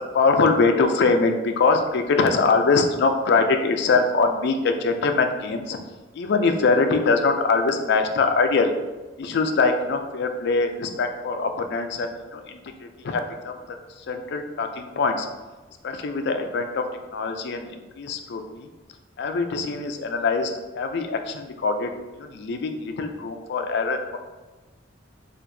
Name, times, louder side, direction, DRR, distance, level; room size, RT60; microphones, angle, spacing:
voice 1, 0.0-5.8 6.1-8.7 9.2-13.6 14.0-15.3 15.8-16.9 17.1-18.7 19.2-24.2, left 4 dB, 60° left, 5 dB, 0.4 m, -23 dB
4.5 x 2.5 x 2.6 m, 1.2 s
head